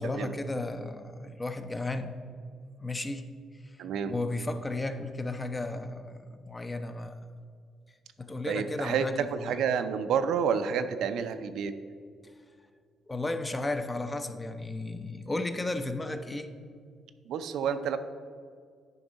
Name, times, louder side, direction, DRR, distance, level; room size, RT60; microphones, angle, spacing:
voice 1, 0.0-2.1 2.8-3.3 4.0-7.2 8.2-9.6 13.1-16.5, left 2 dB, 20° left, 8 dB, 0.6 m, -34 dB
voice 2, 3.8-4.1 8.5-9.1 9.3-11.7 17.3-18.0, right 7 dB, 80° right, 9 dB, 0.5 m, -29 dB
9.6 x 5.3 x 4.0 m, 2.1 s
cardioid pair, 90°, 0 cm